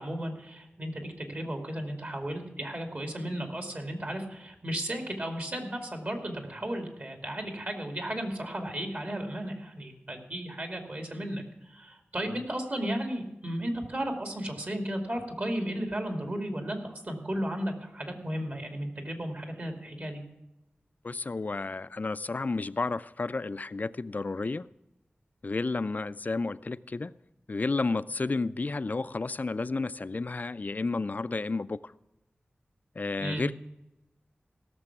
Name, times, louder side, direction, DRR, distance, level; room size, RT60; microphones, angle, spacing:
voice 1, 0.0-20.2 33.2-33.5, right 1 dB, 45° right, 4 dB, 2.5 m, -34 dB
voice 2, 21.0-24.7 25.4-27.1 27.5-31.9 33.0-33.5, left 3 dB, 45° left, 15 dB, 0.4 m, -31 dB
17.0 x 6.8 x 6.0 m, 0.93 s
wide cardioid pair, 70°, 4 cm